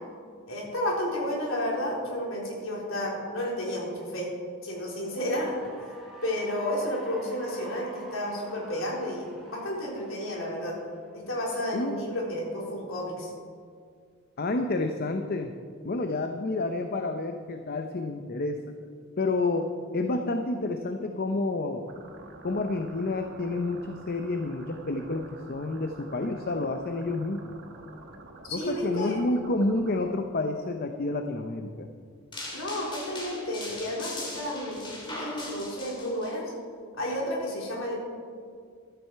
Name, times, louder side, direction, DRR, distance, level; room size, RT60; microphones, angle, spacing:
voice 1, 0.5-4.3 4.6-5.9 6.2-10.8 11.1-13.3 28.5-29.2 32.5-36.5 37.0-37.9, left 1 dB, 80° left, -3 dB, 3.9 m, -31 dB
Cheering / Applause, 4.9-11.5, right 1 dB, ahead, 4.1 m, -49 dB
voice 2, 14.4-15.5 15.8-18.6 19.2-21.8 22.4-27.5 28.5-31.9, left 2 dB, 50° left, 6 dB, 0.7 m, -29 dB
sound 1, 21.9-30.1, right 2 dB, 55° right, 1.6 m, -48 dB
sound 2, 32.3-36.3, left 1 dB, 25° left, 3.0 m, -39 dB
14.5 x 12.5 x 4.7 m, 2.1 s
head